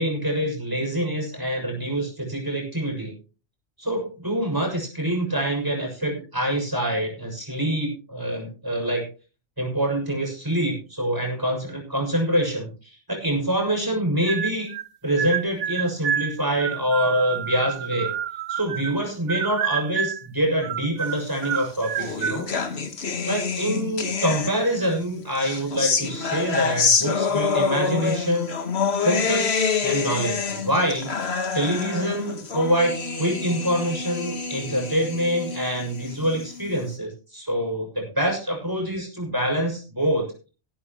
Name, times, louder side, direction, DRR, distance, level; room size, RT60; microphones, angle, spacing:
voice 1, 0.0-3.1 3.8-9.1 9.6-14.7 15.0-18.1 18.5-22.5 23.2-28.5 28.9-31.1 31.5-40.3, equal, 15° right, 2 dB, 6.7 m, -25 dB
sound 1, 14.2-14.9 15.2-19.0 19.3-20.3 20.6-22.4, right 9 dB, 90° right, 1.1 m, -28 dB
sound 2, 21.4-24.9 25.3-36.8, left 5 dB, 65° left, 1.7 m, -27 dB
17.5 x 12.5 x 3.0 m, 0.35 s
omnidirectional pair, 1.2 m